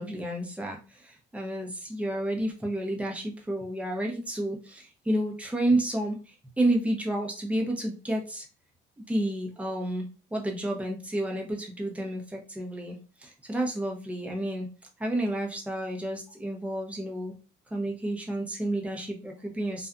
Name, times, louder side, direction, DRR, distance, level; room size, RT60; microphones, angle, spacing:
voice 1, 0.0-8.5 9.1-14.7 15.0-17.3 17.7-19.9, right 1 dB, 5° right, 0 dB, 0.7 m, -30 dB
2.5 x 2.3 x 2.4 m, 0.34 s
cardioid pair, 105°, 20 cm